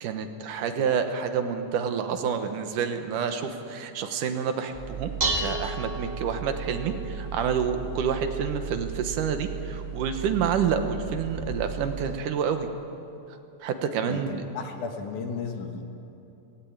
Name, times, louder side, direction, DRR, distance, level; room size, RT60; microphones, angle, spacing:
voice 1, 0.0-12.7 13.6-14.4, right 7 dB, 75° right, 7 dB, 2.6 m, -28 dB
Dishes pots and pans, 4.7-12.1, right 4 dB, 35° right, 1.0 m, -34 dB
voice 2, 14.1-15.8, left 5 dB, 70° left, 4 dB, 2.9 m, -34 dB
17.5 x 17.0 x 8.8 m, 2.9 s
omnidirectional pair, 3.7 m